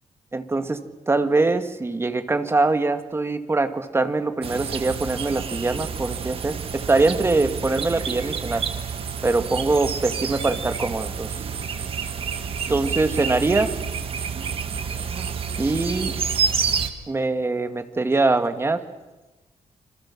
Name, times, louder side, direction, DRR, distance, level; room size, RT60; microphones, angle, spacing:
voice 1, 0.3-0.8 1.1-8.6 9.2-11.3 12.7-13.7 15.6-16.1 17.1-18.8, right 3 dB, 20° right, 8 dB, 2.1 m, -23 dB
sound 1, 4.4-16.9, right 6 dB, 50° right, 2.2 m, -29 dB
27.5 x 26.5 x 7.5 m, 1.1 s
cardioid pair, 130°, 12 cm